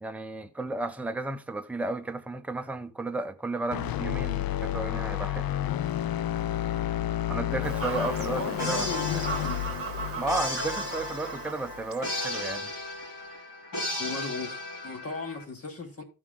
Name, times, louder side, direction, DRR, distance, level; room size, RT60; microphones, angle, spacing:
voice 1, 0.0-5.5 7.3-8.9 10.2-12.7, right 2 dB, 5° right, 0.6 m, -33 dB
sound 1, 3.7-11.9, left 12 dB, 80° left, 0.5 m, -31 dB
Fowl / Bird vocalization bird call bird song, 7.6-12.6, right 5 dB, 40° right, 1.1 m, -38 dB
voice 2, 8.3-9.6 14.0-16.0, left 3 dB, 40° left, 1.6 m, -37 dB
sound 2, 8.6-15.4, left 2 dB, 60° left, 3.2 m, -35 dB
14.0 x 4.8 x 3.7 m
wide cardioid pair, 180°, 35 cm